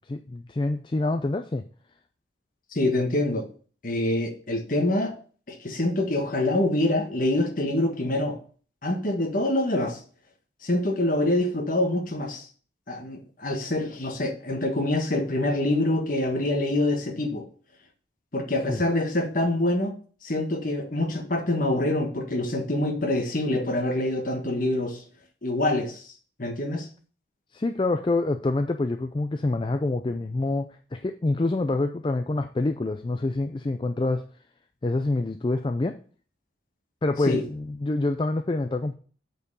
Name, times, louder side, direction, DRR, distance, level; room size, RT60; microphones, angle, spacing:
voice 1, 0.1-1.6 18.7-18.8 27.5-34.3 34.8-36.0 37.0-38.9, left 2 dB, 25° left, 0.4 m, -26 dB
voice 2, 2.7-3.5 3.8-5.1 5.5-8.4 8.8-10.0 10.6-12.5 12.9-17.5 18.3-19.9 20.2-25.0 25.4-26.1 26.4-26.9 37.3-37.4, left 1 dB, 45° left, 1.4 m, -25 dB
8.1 x 4.4 x 6.9 m
head